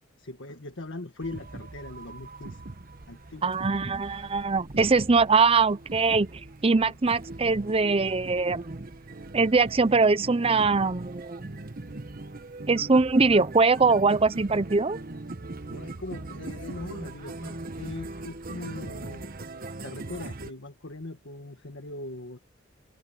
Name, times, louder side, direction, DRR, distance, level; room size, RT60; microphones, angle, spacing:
voice 1, 0.2-2.6 3.1-3.8 15.7-19.2 19.8-22.4, left 2 dB, 65° left, 1.7 m, -40 dB
sound 1, 1.2-20.5, right 2 dB, 45° right, 1.2 m, -40 dB
voice 2, 3.4-8.9 9.3-11.5 12.7-15.0, right 4 dB, 30° right, 0.6 m, -22 dB
head